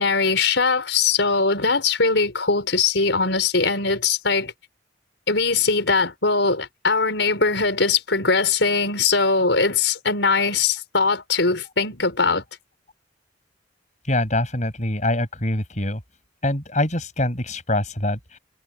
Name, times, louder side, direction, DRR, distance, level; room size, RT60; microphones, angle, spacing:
voice 1, 0.0-4.5 5.3-12.4, left 4 dB, 80° left, 4.9 m, -21 dB
voice 2, 14.1-16.0 16.4-18.4, left 1 dB, 40° left, 7.3 m, -24 dB
head